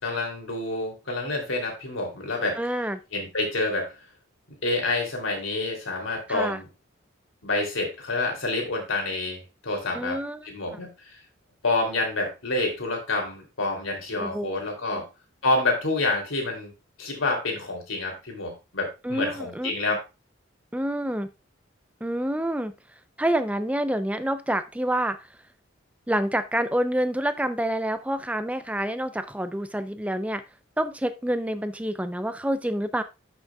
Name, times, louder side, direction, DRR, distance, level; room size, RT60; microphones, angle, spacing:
voice 1, 0.0-2.6 3.1-3.9 4.5-6.7 7.4-10.2 10.4-11.2 11.6-15.1 15.4-16.7 17.0-20.0, left 2 dB, 85° left, 2 dB, 3.0 m, -28 dB
voice 2, 2.6-3.0 6.3-6.6 9.9-10.4 14.2-14.5 14.9-15.0 19.0-19.7 20.7-21.3 22.0-22.7 23.2-25.3 26.1-30.4 30.8-33.0, right 1 dB, 5° right, 11 dB, 0.5 m, -27 dB
12.0 x 6.2 x 2.3 m, 0.26 s
head